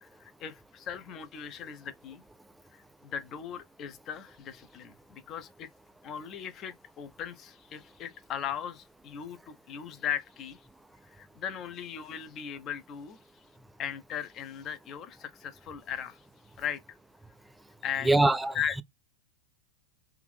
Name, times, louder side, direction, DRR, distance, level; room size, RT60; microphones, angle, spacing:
voice 1, 0.0-2.2 2.7-5.7 6.0-10.6 11.1-13.2 13.8-16.2 16.6-17.0 17.8-18.2 18.5-18.8, left 8 dB, 30° left, 0.6 m, -38 dB
voice 2, 18.0-18.8, right 2 dB, 5° right, 0.3 m, -24 dB
3.4 x 2.6 x 3.3 m
figure-of-eight pair, 90°, 0 cm